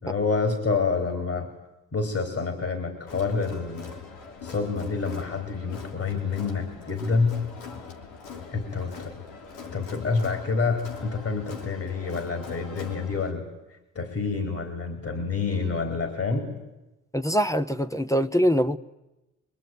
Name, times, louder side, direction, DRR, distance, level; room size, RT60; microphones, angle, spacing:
voice 1, 0.0-1.5 1.9-3.8 4.4-7.4 8.5-9.1 9.7-13.5 13.9-16.5, left 4 dB, 45° left, 6 dB, 4.5 m, -28 dB
Crowd, 3.1-13.3, left 6 dB, 90° left, 2.9 m, -42 dB
voice 2, 17.1-18.8, equal, 10° left, 11 dB, 1.0 m, -23 dB
25.0 x 22.5 x 9.5 m, 0.97 s
supercardioid pair, 75°, 34 cm